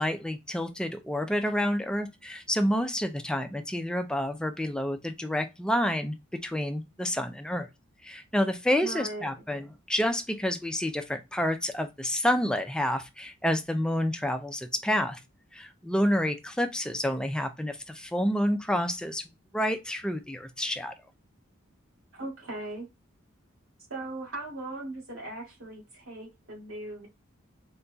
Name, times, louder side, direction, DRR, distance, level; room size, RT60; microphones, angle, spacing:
voice 1, 0.0-7.7 8.0-15.2 15.5-19.3 19.5-20.9, equal, 5° left, 0.3 m, -29 dB
voice 2, 8.8-9.3 22.1-22.9 23.9-27.1, right 2 dB, 80° right, 2.2 m, -38 dB
4.0 x 3.8 x 2.2 m
head